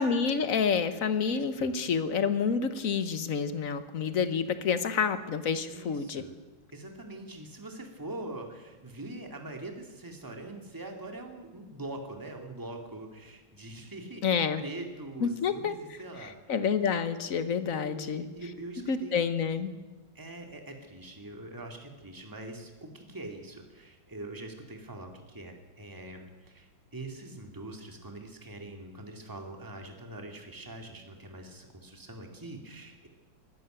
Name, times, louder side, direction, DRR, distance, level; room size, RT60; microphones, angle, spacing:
voice 1, 0.0-6.2 14.2-14.6 15.2-18.2 18.9-19.7, left 6 dB, 45° left, 11 dB, 1.5 m, -29 dB
voice 2, 1.3-1.7 5.7-6.3 6.7-16.6 17.6-19.7 20.1-33.1, right 2 dB, 10° right, 3 dB, 2.4 m, -43 dB
22.5 x 13.0 x 9.1 m, 1.2 s
omnidirectional pair, 2.1 m